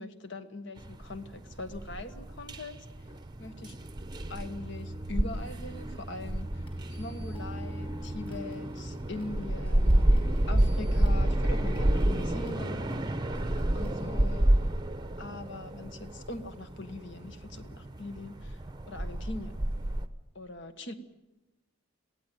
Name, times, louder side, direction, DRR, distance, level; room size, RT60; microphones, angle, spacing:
voice 1, 0.0-2.8 3.4-3.8 4.3-6.6 7.0-13.3 13.7-14.5 15.2-18.6 18.9-19.6 20.3-20.9, left 2 dB, 55° left, 10 dB, 1.5 m, -41 dB
sound 1, 0.8-20.1, right 1 dB, 20° right, 0.8 m, -30 dB
sound 2, 6.7-14.0, left 1 dB, 25° left, 5.8 m, -53 dB
22.0 x 16.5 x 9.4 m, 1.0 s
head